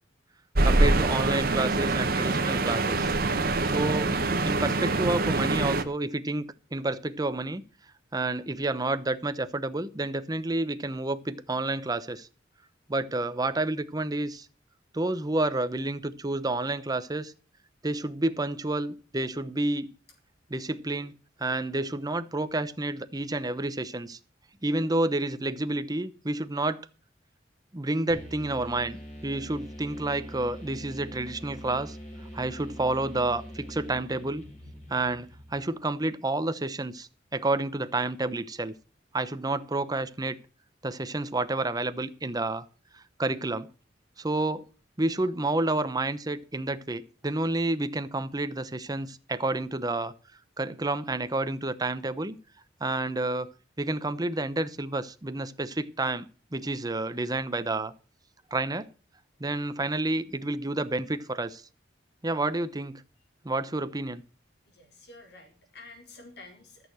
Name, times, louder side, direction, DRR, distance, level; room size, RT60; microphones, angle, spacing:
sound 1, 0.5-5.8, right 2 dB, 55° right, 1.2 m, -25 dB
voice 1, 0.6-3.1 3.6-4.1 4.4-6.4 6.7-7.6 8.1-12.3 12.9-14.5 14.9-17.3 17.8-19.9 20.5-21.1 21.4-24.2 24.6-26.8 27.7-29.0 29.2-32.0 32.3-34.4 34.9-38.7 39.1-40.4 40.8-42.6 42.9-43.7 44.2-44.7 45.0-50.1 50.6-52.3 52.8-53.5 53.8-57.9 58.5-58.9 59.4-61.6 62.2-63.0 63.4-64.2, right 2 dB, 20° right, 0.8 m, -29 dB
sound 2, 28.1-35.8, equal, 35° left, 4.2 m, -43 dB
voice 2, 64.7-66.9, left 3 dB, 60° left, 4.2 m, -50 dB
13.5 x 6.7 x 6.3 m
head